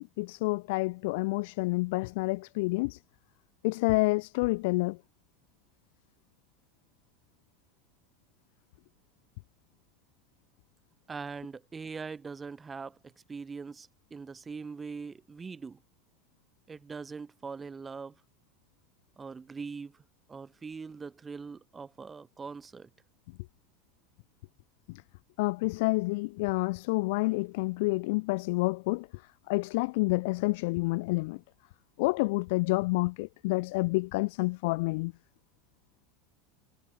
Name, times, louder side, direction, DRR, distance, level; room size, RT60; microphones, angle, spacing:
voice 1, 0.0-3.0 3.6-5.0 24.9-25.0 25.4-29.2 29.5-31.4 32.0-35.1, left 24 dB, 65° left, 0.4 m, -29 dB
voice 2, 11.1-15.8 16.7-18.1 19.2-20.0 20.3-22.9, right 5 dB, 15° right, 0.9 m, -42 dB
supercardioid pair, 160°, 0 cm